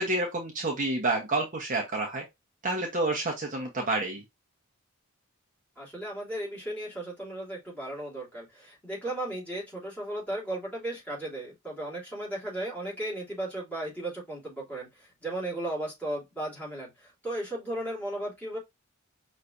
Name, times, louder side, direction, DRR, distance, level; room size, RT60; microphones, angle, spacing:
voice 1, 0.0-2.2 2.6-4.2, right 2 dB, 35° right, 0.9 m, -29 dB
voice 2, 5.8-18.6, right 1 dB, 5° left, 3.0 m, -35 dB
5.6 x 3.2 x 2.5 m
head